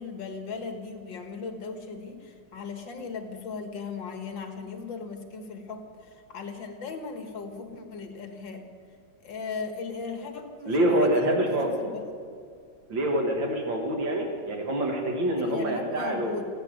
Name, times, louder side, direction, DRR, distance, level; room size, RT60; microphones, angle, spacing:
voice 1, 0.0-8.7 9.2-12.1 15.4-16.5, left 4 dB, 80° left, 6 dB, 2.3 m, -37 dB
voice 2, 10.7-11.7 12.9-16.5, right 1 dB, 85° right, 2 dB, 2.5 m, -26 dB
15.0 x 10.5 x 9.2 m, 2.3 s
omnidirectional pair, 2.0 m